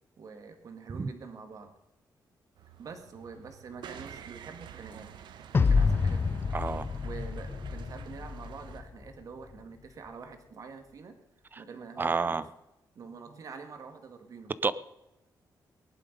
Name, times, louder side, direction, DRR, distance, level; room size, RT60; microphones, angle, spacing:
voice 1, 0.2-1.8 2.8-5.1 5.5-6.5 7.0-11.2 11.6-12.5 12.9-14.6, right 5 dB, 50° right, 6 dB, 2.1 m, -45 dB
sound 1, 2.6-8.8, right 8 dB, 85° right, 1.2 m, -49 dB
sound 2, 5.5-8.8, left 4 dB, 30° left, 0.5 m, -28 dB
voice 2, 6.5-6.9 12.0-12.4 14.6-14.7, right 4 dB, 25° right, 16 dB, 0.6 m, -28 dB
19.0 x 11.0 x 5.3 m, 0.90 s
wide cardioid pair, 165°, 8 cm